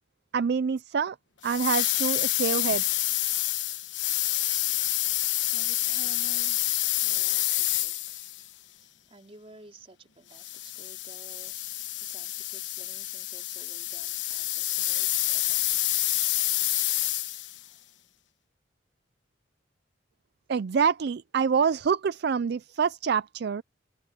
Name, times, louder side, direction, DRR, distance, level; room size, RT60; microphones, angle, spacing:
voice 1, 0.3-1.2 1.4-2.8 20.5-23.6, right 6 dB, 60° right, 0.4 m, -26 dB
sound 1, 1.4-8.5 10.3-17.6, left 15 dB, 80° left, 1.1 m, -28 dB
voice 2, 5.5-8.2 9.1-11.6 12.0-15.8, right 2 dB, 30° right, 4.3 m, -53 dB
head